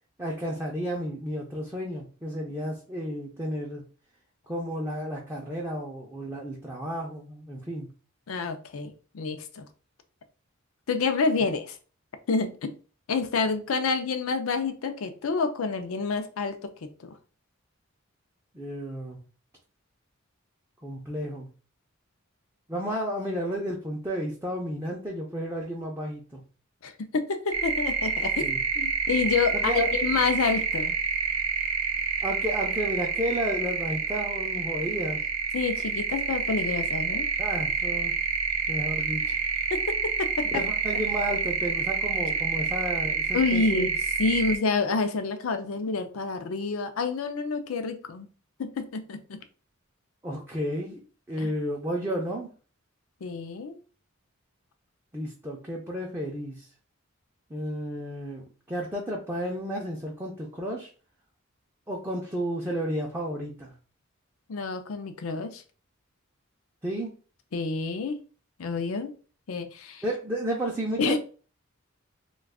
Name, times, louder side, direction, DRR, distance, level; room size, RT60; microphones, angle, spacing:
voice 1, 0.2-3.8 4.5-7.9 18.5-19.2 20.8-21.5 22.7-26.4 28.4-28.6 29.5-29.9 32.2-35.2 37.4-38.1 38.7-39.4 40.5-43.9 50.2-51.0 51.3-52.5 55.1-56.7 57.5-60.9 61.9-63.7 66.8-67.1 70.0-71.2, equal, 10° right, -2 dB, 0.4 m, -32 dB
voice 2, 8.3-9.6 10.9-11.8 12.3-12.7 13.1-17.1 26.8-31.0 35.5-37.3 39.7-40.6 43.3-43.9 44.2-48.3 48.6-49.4 51.4-51.5 53.2-53.8 64.5-65.6 67.5-68.2 68.6-69.1 69.5-70.0 71.0-71.2, left 4 dB, 90° left, 8 dB, 0.5 m, -28 dB
sound 1, 27.5-44.6, right 6 dB, 85° right, 0.4 m, -28 dB
2.3 x 2.3 x 3.5 m, 0.38 s
head